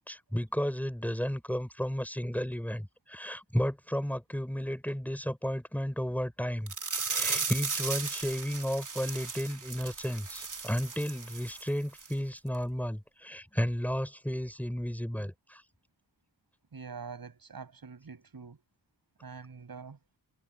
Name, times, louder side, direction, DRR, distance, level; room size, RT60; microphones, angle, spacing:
voice 1, 0.0-6.7 7.1-15.6, equal, 5° left, 6.6 m, -33 dB
sound 1, 6.7-11.7 12.0-12.1 12.5-12.6, right 4 dB, 55° right, 3.0 m, -36 dB
voice 2, 16.7-18.6 19.2-20.0, right 5 dB, 75° right, 7.8 m, -45 dB
wide cardioid pair, 100°, 36 cm